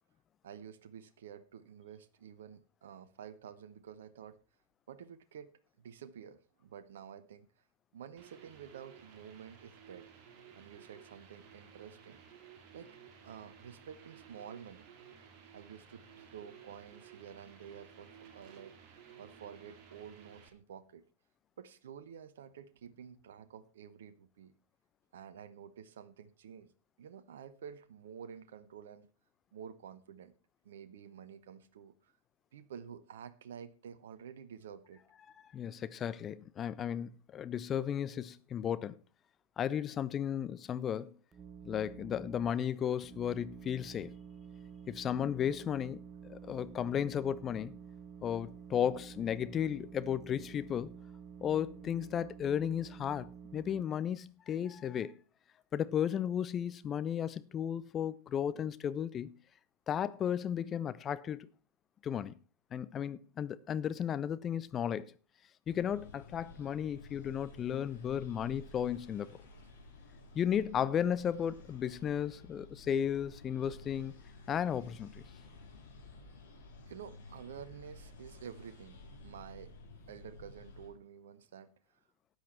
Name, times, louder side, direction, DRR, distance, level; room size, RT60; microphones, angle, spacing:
voice 1, 0.4-4.4 4.9-5.5 5.8-7.5 7.9-10.1 10.6-12.2 12.7-13.0 13.2-14.9 15.5-18.8 19.2-21.0 21.6-24.5 25.1-26.7 27.0-29.1 29.5-30.3 30.6-32.1 32.5-35.0 76.9-79.8 80.1-81.7, right 8 dB, 60° right, 0.9 m, -50 dB
sound 1, 8.2-20.5, right 7 dB, 40° right, 2.6 m, -56 dB
voice 2, 35.5-39.0 39.6-41.2 41.6-44.1 44.9-47.8 48.2-50.9 51.4-53.3 53.5-55.2 55.7-59.3 59.9-61.5 62.0-62.4 62.7-65.1 65.7-69.3 70.3-74.1 74.5-75.2, left 9 dB, 25° left, 0.6 m, -34 dB
sound 2, 41.3-42.5 43.0-53.8, right 7 dB, 20° right, 0.7 m, -50 dB
sound 3, 65.7-80.9, left 2 dB, 60° left, 3.7 m, -53 dB
13.0 x 9.0 x 4.3 m
figure-of-eight pair, 90°, 0 cm